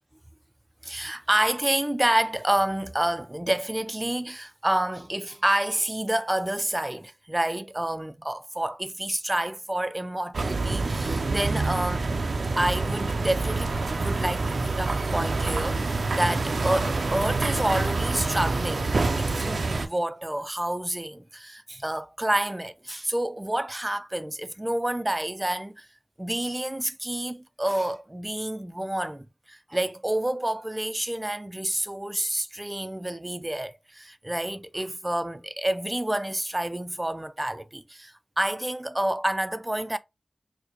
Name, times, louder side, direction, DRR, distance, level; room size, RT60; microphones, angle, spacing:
voice 1, 0.8-12.2 12.6-25.9 26.2-40.0, right 1 dB, 20° right, 0.4 m, -29 dB
sound 1, 10.3-19.9, right 3 dB, 80° right, 0.5 m, -27 dB
4.5 x 2.1 x 2.8 m
wide cardioid pair, 65°, 0 cm